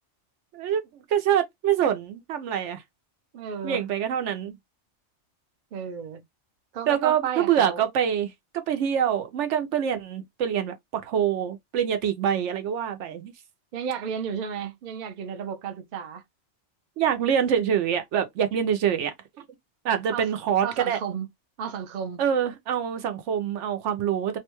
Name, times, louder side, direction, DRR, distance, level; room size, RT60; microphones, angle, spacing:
voice 1, 0.5-2.8 3.6-4.5 6.9-13.3 17.0-19.4 19.8-21.0 22.2-24.4, right 9 dB, 85° right, 0.9 m, -25 dB
voice 2, 3.3-3.8 5.7-6.2 6.7-7.8 13.7-16.2 20.1-20.3 20.6-21.3 21.6-22.2, right 7 dB, 55° right, 0.6 m, -33 dB
2.6 x 2.2 x 2.9 m
omnidirectional pair, 1.2 m